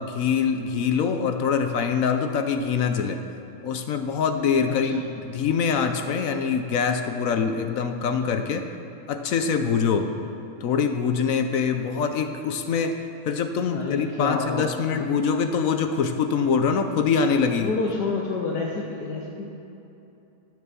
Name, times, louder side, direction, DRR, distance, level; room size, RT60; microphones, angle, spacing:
voice 1, 0.0-3.2 3.6-8.7 9.1-10.1 10.6-17.7, left 6 dB, 65° left, 7 dB, 1.0 m, -24 dB
voice 2, 10.0-10.3 13.7-14.9 17.6-19.5, left 4 dB, 85° left, -1 dB, 1.5 m, -29 dB
12.0 x 6.8 x 6.8 m, 2.9 s
omnidirectional pair, 1.7 m